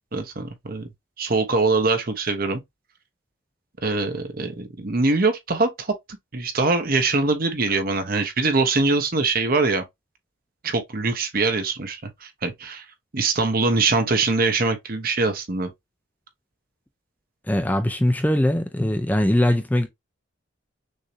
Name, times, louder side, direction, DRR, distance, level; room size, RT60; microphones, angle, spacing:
voice 1, 0.1-0.9 1.2-2.6 3.8-5.9 6.3-9.8 10.6-12.8 13.1-15.7, right 3 dB, 45° right, 0.9 m, -23 dB
voice 2, 17.5-19.9, left 1 dB, 10° left, 0.5 m, -21 dB
6.4 x 2.7 x 2.8 m
head